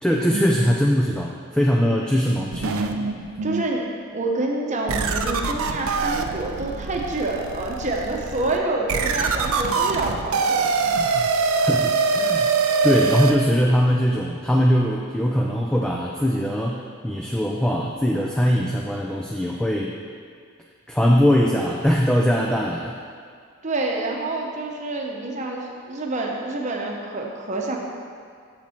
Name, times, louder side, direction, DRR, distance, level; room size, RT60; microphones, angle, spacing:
voice 1, 0.0-2.8 11.6-20.0 20.9-23.0, equal, 5° left, -1 dB, 0.3 m, -21 dB
sound 1, 2.5-3.7 4.2-4.4 4.9-13.4, right 4 dB, 75° right, 0.5 m, -24 dB
voice 2, 3.4-10.7 23.6-27.8, right 2 dB, 35° right, 0 dB, 0.9 m, -27 dB
7.4 x 7.3 x 4.3 m, 2.1 s
head